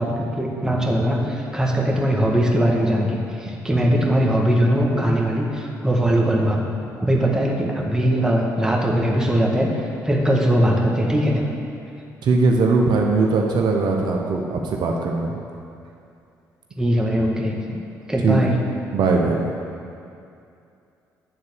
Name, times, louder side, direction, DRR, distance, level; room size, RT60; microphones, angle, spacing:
voice 1, 0.0-6.6 7.0-11.4 16.8-17.6 18.1-18.6, equal, 10° right, -2 dB, 1.6 m, -20 dB
voice 2, 12.2-15.4 17.7-17.8 18.2-18.4 18.9-19.5, right 3 dB, 65° right, 1 dB, 0.8 m, -20 dB
9.0 x 3.9 x 6.9 m, 2.6 s
hypercardioid pair, 50°, 8 cm